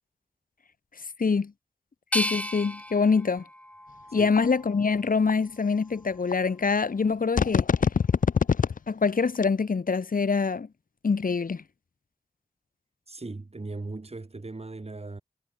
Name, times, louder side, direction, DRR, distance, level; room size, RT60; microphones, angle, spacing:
voice 1, 1.2-1.5 2.1-3.4 4.1-7.7 8.9-10.7 11.0-11.6, left 5 dB, 90° left, 2.8 m, -25 dB
sound 1, 2.1-5.0 5.6-6.4, left 1 dB, 10° left, 1.4 m, -35 dB
sound 2, 4.4-4.5 5.3-5.4 6.3-6.4 7.4-8.8 9.3-9.4, left 6 dB, 70° left, 0.5 m, -22 dB
voice 2, 13.1-15.2, right 3 dB, 45° right, 4.4 m, -38 dB
wide cardioid pair, 55°, 14 cm